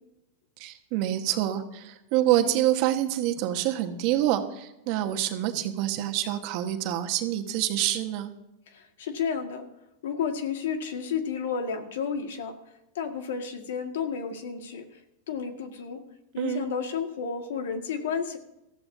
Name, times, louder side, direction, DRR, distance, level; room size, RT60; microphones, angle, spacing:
voice 1, 0.6-8.3 16.4-16.7, right 13 dB, 55° right, 5 dB, 1.4 m, -26 dB
voice 2, 8.7-9.6 10.0-12.5 13.0-15.0 15.3-16.0 16.3-18.4, left 6 dB, 80° left, 5 dB, 1.9 m, -31 dB
19.0 x 14.0 x 2.8 m, 0.89 s
supercardioid pair, 130°, 0 cm